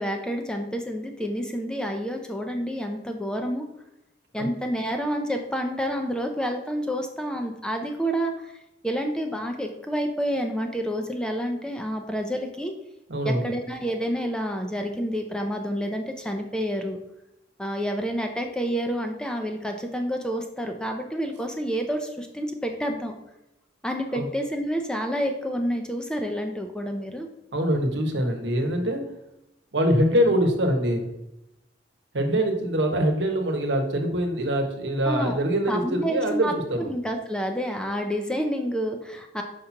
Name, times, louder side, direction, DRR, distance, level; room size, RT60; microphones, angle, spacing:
voice 1, 0.0-3.6 4.3-8.3 8.8-12.7 13.2-17.0 17.6-23.1 23.8-27.3 35.1-35.4 35.7-39.4, equal, 5° left, 4 dB, 0.6 m, -29 dB
voice 2, 13.1-13.5 24.1-24.3 27.5-29.0 29.7-31.1 32.1-36.9, equal, 80° right, 4 dB, 1.1 m, -24 dB
5.1 x 4.2 x 5.7 m, 0.88 s
head